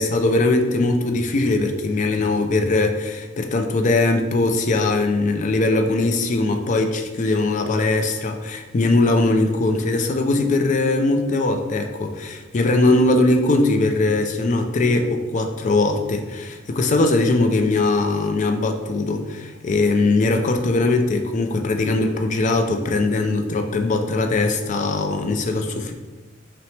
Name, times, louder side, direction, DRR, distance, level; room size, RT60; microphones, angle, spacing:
voice 1, 0.0-25.9, left 2 dB, 40° left, 5 dB, 0.3 m, -20 dB
5.5 x 2.1 x 3.2 m, 1.2 s
head